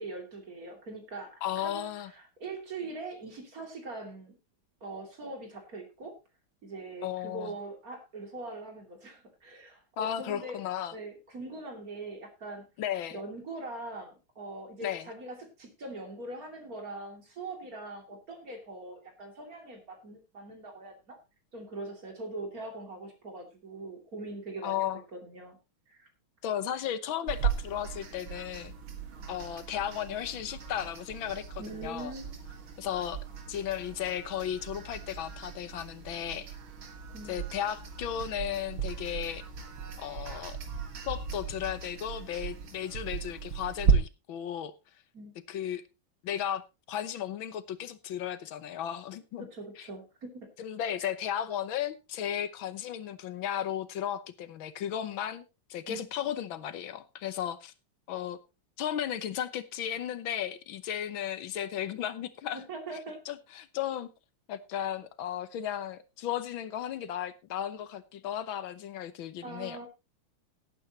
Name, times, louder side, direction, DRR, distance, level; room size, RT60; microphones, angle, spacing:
voice 1, 0.0-4.4 4.8-6.2 6.6-10.6 10.9-12.7 13.1-21.2 21.5-25.6 25.9-26.1 31.6-32.3 37.1-37.4 45.1-45.3 49.4-50.5 55.9-56.0 62.5-63.2 69.4-69.9, right 2 dB, 45° right, 3.1 m, -42 dB
voice 2, 1.4-2.1 7.0-7.5 10.0-10.9 12.8-13.2 14.8-15.0 24.6-25.0 26.4-28.7 29.3-32.1 32.8-33.2 33.5-36.5 37.3-39.4 40.0-40.6 41.1-44.7 45.5-45.8 46.2-46.6 46.9-49.5 50.6-55.4 55.7-57.7 58.1-58.4 58.8-62.6 63.3-64.1 64.5-69.8, left 10 dB, 80° left, 1.7 m, -35 dB
sound 1, 27.3-43.9, right 6 dB, 90° right, 2.6 m, -36 dB
18.0 x 9.1 x 2.9 m
omnidirectional pair, 2.2 m